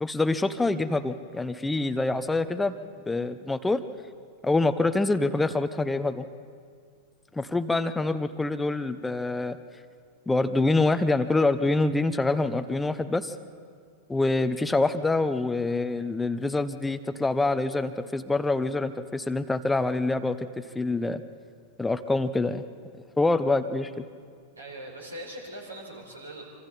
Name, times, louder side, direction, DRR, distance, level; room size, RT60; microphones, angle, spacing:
voice 1, 0.0-2.7 3.1-3.8 4.4-6.2 7.3-9.6 10.3-13.3 14.1-20.4 20.7-21.2 21.8-22.6 23.2-23.9, left 2 dB, 10° left, 10 dB, 0.9 m, -25 dB
voice 2, 24.6-26.4, right 1 dB, 80° right, -1 dB, 4.8 m, -41 dB
26.0 x 26.0 x 4.3 m, 2.1 s
figure-of-eight pair, 90°, 0 cm